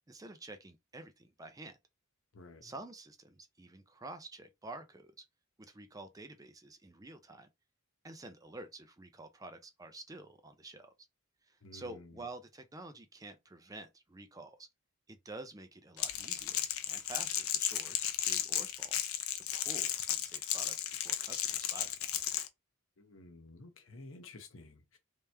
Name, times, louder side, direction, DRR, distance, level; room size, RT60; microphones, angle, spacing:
voice 1, 0.1-1.8 2.6-5.1 5.6-7.5 8.0-10.9 11.5-14.7 15.1-19.0 19.4-21.9, right 2 dB, 15° right, 0.5 m, -49 dB
voice 2, 2.3-2.7 11.6-12.2 23.0-25.0, left 2 dB, 65° left, 0.9 m, -52 dB
Crackle, 16.0-22.5, left 11 dB, 80° left, 0.6 m, -34 dB
3.4 x 2.9 x 3.3 m
head